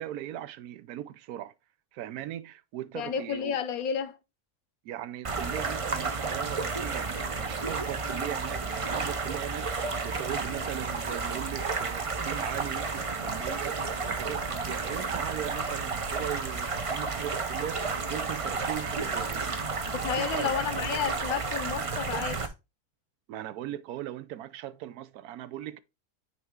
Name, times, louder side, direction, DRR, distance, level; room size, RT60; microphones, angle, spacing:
voice 1, 0.0-1.5 1.9-3.6 4.8-19.5 20.1-20.5 23.3-25.8, right 12 dB, 80° right, 1.1 m, -39 dB
voice 2, 2.9-4.2 19.9-22.4, left 8 dB, 75° left, 1.2 m, -31 dB
sound 1, 5.2-22.5, right 4 dB, 40° right, 0.4 m, -32 dB
sound 2, 15.1-21.1, right 4 dB, 55° right, 1.3 m, -48 dB
8.9 x 3.4 x 3.5 m
omnidirectional pair, 1.6 m